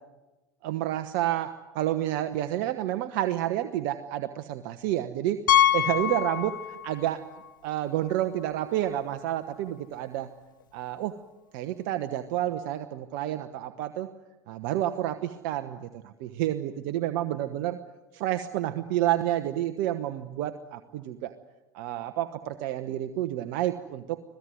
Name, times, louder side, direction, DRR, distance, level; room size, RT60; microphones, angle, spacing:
voice 1, 0.6-5.4 5.7-7.3 7.6-10.3 10.7-11.2 11.5-14.1 14.5-17.8 18.1-21.3 21.7-24.2, right 13 dB, 60° right, 9 dB, 1.1 m, -29 dB
Piano, 5.5-7.1 7.3-7.5 8.1-8.2 8.4-8.5 10.6-10.7, left 11 dB, 80° left, 0.7 m, -24 dB
26.0 x 17.0 x 9.5 m, 1.1 s
hypercardioid pair, 75°, 11 cm